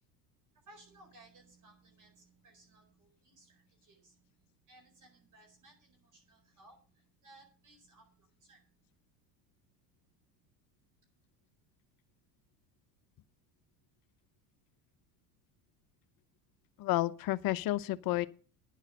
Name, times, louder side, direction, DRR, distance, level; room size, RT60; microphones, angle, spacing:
voice 1, 0.6-8.8, right 2 dB, 40° right, 4.7 m, -61 dB
voice 2, 16.8-18.3, left 16 dB, 45° left, 0.7 m, -31 dB
10.0 x 7.2 x 7.7 m
hypercardioid pair, 85°, 48 cm